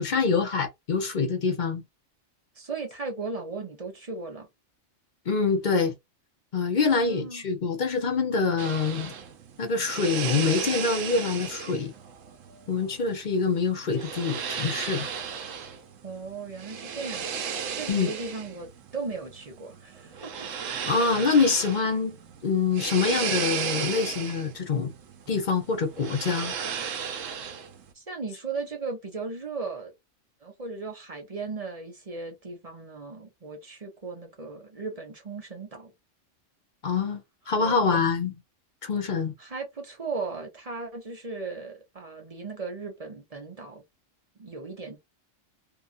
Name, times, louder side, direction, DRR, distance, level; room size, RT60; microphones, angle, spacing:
voice 1, 0.0-1.8 5.3-5.9 6.5-9.1 9.6-11.9 12.7-15.1 17.9-18.1 20.8-22.2 22.4-24.9 25.3-26.5 36.8-38.4 38.8-39.3, left 4 dB, 50° left, 0.6 m, -25 dB
voice 2, 2.5-4.5 6.9-7.4 16.0-17.3 17.7-20.5 27.9-29.9 30.4-35.9 37.6-38.0 39.4-43.8 44.4-45.0, right 4 dB, 35° right, 0.8 m, -37 dB
sound 1, 8.6-27.9, right 7 dB, 80° right, 1.0 m, -35 dB
2.8 x 2.3 x 2.5 m
omnidirectional pair, 1.3 m